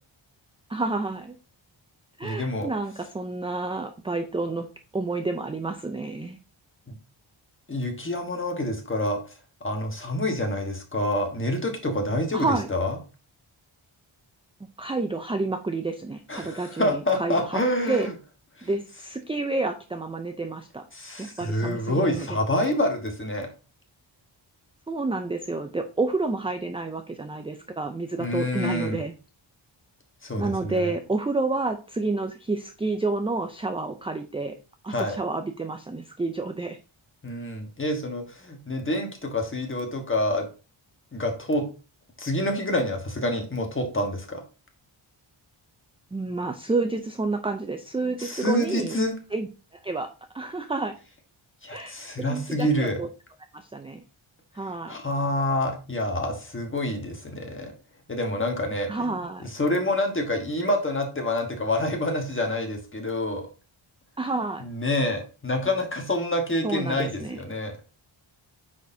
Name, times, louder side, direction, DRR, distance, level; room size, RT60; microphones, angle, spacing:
voice 1, 0.7-1.4 2.2-4.7 4.9-6.4 12.3-12.7 14.8-17.6 17.9-18.1 18.6-20.9 21.2-22.4 24.9-29.1 30.4-34.5 34.8-36.8 46.1-49.0 49.3-49.5 49.8-51.0 51.7-53.1 53.5-54.0 54.5-55.0 58.9-59.5 64.2-64.6 66.6-67.4, right 3 dB, 10° right, 7 dB, 0.4 m, -29 dB
voice 2, 2.2-2.7 6.9-7.0 7.7-9.2 9.6-13.0 16.3-18.1 18.6-18.7 20.9-23.5 28.2-29.0 30.2-30.9 34.9-35.2 37.2-40.5 41.1-41.6 42.2-44.4 48.2-49.1 51.6-53.0 54.9-57.7 58.1-63.5 64.6-67.7, left 1 dB, 25° left, 3 dB, 1.4 m, -27 dB
9.3 x 4.3 x 2.7 m, 0.34 s
wide cardioid pair, 155°, 48 cm